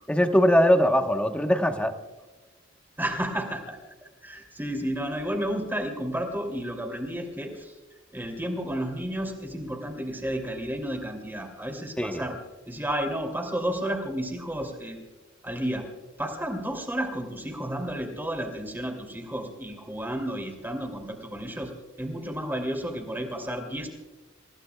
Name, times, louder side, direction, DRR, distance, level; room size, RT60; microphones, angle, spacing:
voice 1, 0.1-1.9 12.0-12.2, equal, 5° left, 5 dB, 1.1 m, -21 dB
voice 2, 3.0-7.7 8.1-12.4 12.7-15.0 15.4-15.9 16.2-23.9, equal, 10° right, 3 dB, 2.8 m, -32 dB
28.5 x 15.5 x 2.3 m, 1.2 s
head